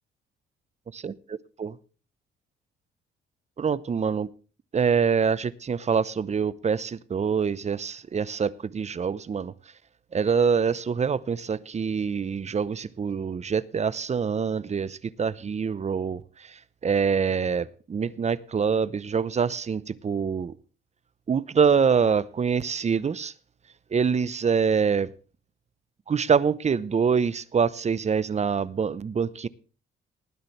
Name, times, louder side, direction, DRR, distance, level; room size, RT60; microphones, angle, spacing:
voice 1, 0.9-1.8 3.6-4.3 4.7-9.5 10.1-20.6 21.3-23.3 23.9-25.1 26.1-29.5, right 6 dB, 35° right, 0.8 m, -25 dB
19.5 x 10.5 x 3.3 m
cardioid pair, 90°, 20 cm